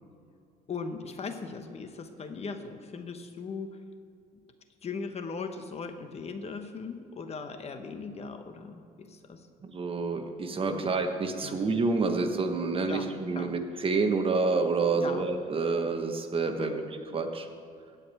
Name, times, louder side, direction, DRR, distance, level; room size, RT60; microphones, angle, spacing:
voice 1, 0.7-3.7 4.8-9.5 10.7-10.9 11.4-11.6 12.9-13.1 13.4-13.5 14.9-15.3 16.6-16.8, left 4 dB, 40° left, 7 dB, 1.1 m, -39 dB
voice 2, 9.6-17.5, right 4 dB, 35° right, 5 dB, 1.2 m, -28 dB
15.5 x 5.3 x 8.8 m, 2.4 s
cardioid pair, 110°, 17 cm